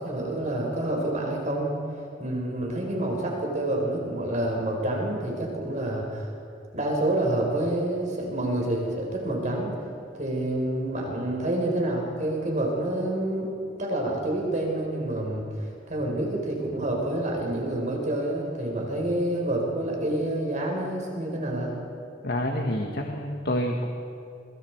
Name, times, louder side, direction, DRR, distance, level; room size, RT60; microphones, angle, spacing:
voice 1, 0.0-1.7 2.2-6.3 6.7-9.8 10.1-13.5 13.8-21.7, right 1 dB, 45° right, 0 dB, 4.4 m, -28 dB
voice 2, 22.2-23.9, equal, 60° left, 2 dB, 1.6 m, -28 dB
29.5 x 24.0 x 4.7 m, 2.6 s
head